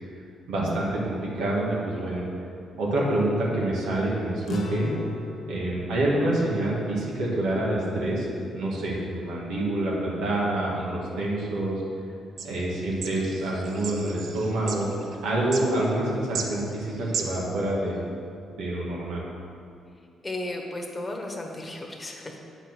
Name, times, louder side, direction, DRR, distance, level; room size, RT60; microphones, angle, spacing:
voice 1, 0.5-2.2 2.8-4.9 5.5-8.3 8.5-11.8 12.4-14.9 15.2-18.0 18.5-19.2, right 1 dB, 85° right, -5 dB, 2.0 m, -27 dB
sound 1, 4.5-9.1, left 3 dB, 45° left, 0.8 m, -39 dB
sound 2, 12.4-17.4, right 5 dB, 65° right, 0.8 m, -36 dB
voice 2, 20.2-22.4, left 1 dB, 20° left, 0 dB, 1.3 m, -34 dB
8.6 x 5.0 x 6.2 m, 2.4 s
cardioid pair, 90°, 0 cm